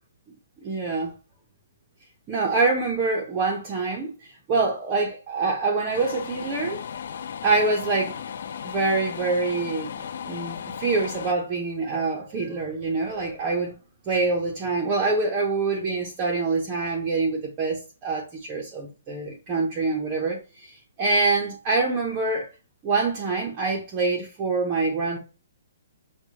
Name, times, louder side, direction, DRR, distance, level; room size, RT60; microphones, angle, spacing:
voice 1, 0.6-1.1 2.3-6.8 7.4-8.2 8.6-13.7 14.1-22.5 22.8-25.2, right 3 dB, 15° right, 0.6 m, -25 dB
sound 1, 5.9-11.3, left 7 dB, 50° left, 0.3 m, -36 dB
6.0 x 2.1 x 2.7 m
hypercardioid pair, 180°, 0 cm